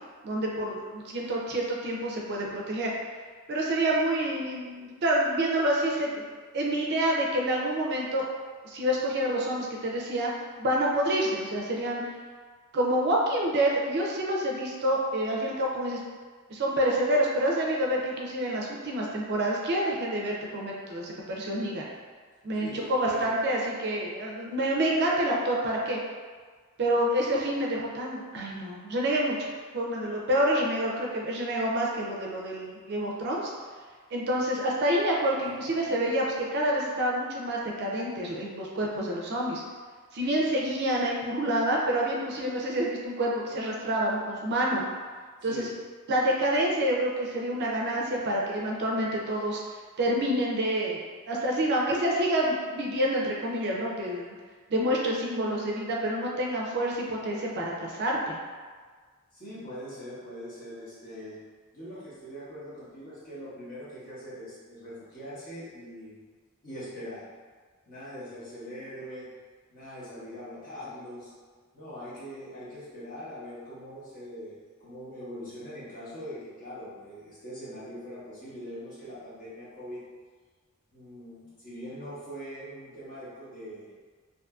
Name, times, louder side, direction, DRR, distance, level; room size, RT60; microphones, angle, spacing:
voice 1, 0.2-2.9 3.5-6.2 6.5-8.3 8.6-10.3 10.6-12.0 12.7-16.0 16.5-21.9 22.4-26.0 26.8-29.5 29.7-33.5 34.1-39.6 40.1-44.8 45.4-45.7 46.1-49.6 50.0-54.3 54.7-58.4, right 1 dB, 50° right, -2 dB, 0.4 m, -28 dB
voice 2, 22.6-23.4 35.6-35.9 45.4-45.7 59.3-61.4 61.7-66.2 66.6-67.2 67.9-69.3 69.7-71.3 71.7-80.0 80.9-83.9, equal, 40° left, -10 dB, 0.9 m, -42 dB
2.6 x 2.5 x 2.3 m, 1.5 s
head